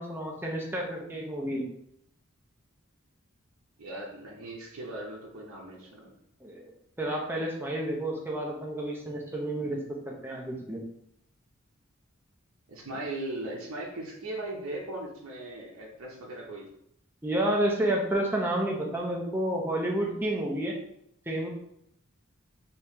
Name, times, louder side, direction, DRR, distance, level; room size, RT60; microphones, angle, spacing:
voice 1, 0.0-1.7 6.4-9.8 10.1-10.8 17.2-20.8 21.3-21.5, right 1 dB, 10° right, -2 dB, 0.5 m, -30 dB
voice 2, 3.8-6.2 12.7-16.7, right 1 dB, 75° right, -3 dB, 0.7 m, -38 dB
2.9 x 2.7 x 3.5 m, 0.73 s
head